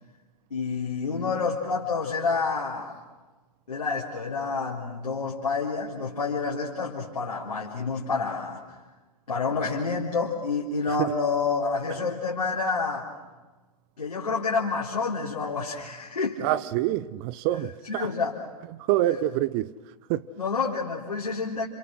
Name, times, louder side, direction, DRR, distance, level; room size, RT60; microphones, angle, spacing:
voice 1, 0.5-2.9 3.7-8.6 9.3-13.1 14.0-16.4 17.8-18.4 20.4-21.7, left 4 dB, 85° left, 4.1 m, -28 dB
voice 2, 16.4-18.1 18.7-19.7 20.1-20.3, right 14 dB, 40° right, 0.8 m, -26 dB
30.0 x 28.0 x 6.4 m
hypercardioid pair, 110°, 20 cm